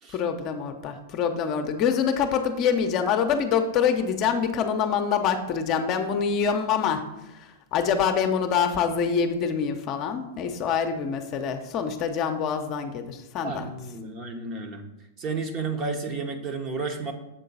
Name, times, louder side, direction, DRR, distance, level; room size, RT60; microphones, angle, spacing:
voice 1, 0.1-7.0 7.3-13.7, left 7 dB, 40° left, 6 dB, 0.7 m, -25 dB
voice 2, 13.4-14.8 15.2-17.1, right 4 dB, 35° right, 5 dB, 1.0 m, -32 dB
7.4 x 3.8 x 5.3 m, 0.94 s
hypercardioid pair, 120°, 0 cm